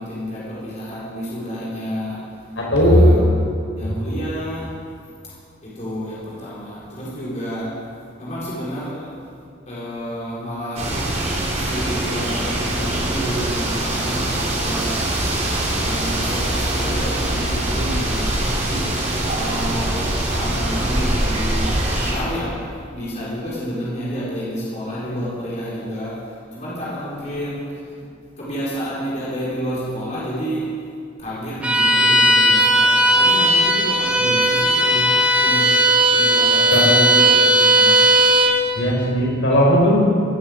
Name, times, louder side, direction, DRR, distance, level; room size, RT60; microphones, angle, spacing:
voice 1, 0.0-2.5 2.8-3.4 3.8-4.8 5.2-7.9 8.2-9.2 9.7-11.0 11.5-15.1 15.7-18.4 19.3-22.6 22.9-27.8 28.4-30.7 31.2-35.8 36.1-38.0, equal, 35° left, -8 dB, 4.9 m, -30 dB
voice 2, 2.6-3.1 18.7-18.9 36.7-36.8 38.7-40.0, equal, 75° left, -4 dB, 5.4 m, -16 dB
sound 1, 10.8-22.1, right 1 dB, 35° right, 3.7 m, -23 dB
Bowed string instrument, 31.6-38.6, right 1 dB, 5° right, 1.5 m, -16 dB
17.5 x 9.6 x 8.2 m, 2.3 s
head